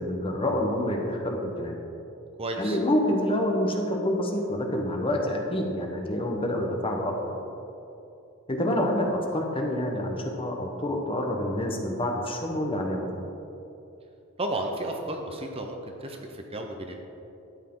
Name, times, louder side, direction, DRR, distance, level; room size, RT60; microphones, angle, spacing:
voice 1, 0.0-1.7 2.6-7.3 8.5-13.1, left 1 dB, 25° left, 2 dB, 1.1 m, -27 dB
voice 2, 2.4-2.8 14.4-17.0, right 1 dB, 25° right, 3 dB, 0.8 m, -33 dB
12.5 x 8.3 x 3.8 m, 2.9 s
head